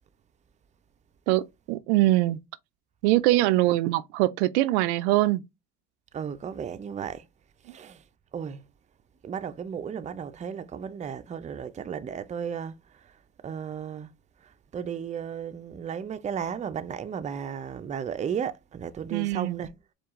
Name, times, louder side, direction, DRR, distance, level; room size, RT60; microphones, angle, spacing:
voice 1, 1.3-2.4 3.0-5.4 19.1-19.6, right 17 dB, 75° right, 0.5 m, -23 dB
voice 2, 6.1-7.3 7.6-8.1 8.3-8.6 9.2-19.7, right 7 dB, 20° right, 0.5 m, -35 dB
4.6 x 2.4 x 3.6 m
hypercardioid pair, 80°, 35 cm